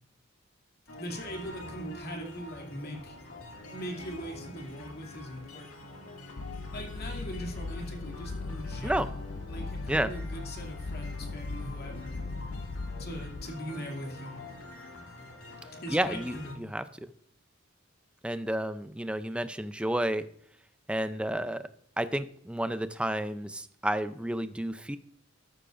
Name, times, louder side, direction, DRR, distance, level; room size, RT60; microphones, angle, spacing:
sound 1, 0.9-16.6, left 1 dB, 80° left, 2.2 m, -46 dB
voice 1, 1.0-3.2 3.7-5.7 6.7-9.1 9.5-12.2 13.0-14.4 15.8-16.7, equal, 45° left, 1 dB, 2.5 m, -41 dB
sound 2, 6.4-13.4, left 3 dB, 65° left, 0.7 m, -38 dB
voice 2, 15.9-17.1 18.2-20.2 20.9-21.6 22.0-25.0, right 1 dB, 5° right, 11 dB, 0.4 m, -31 dB
13.5 x 11.5 x 2.6 m, 0.66 s
head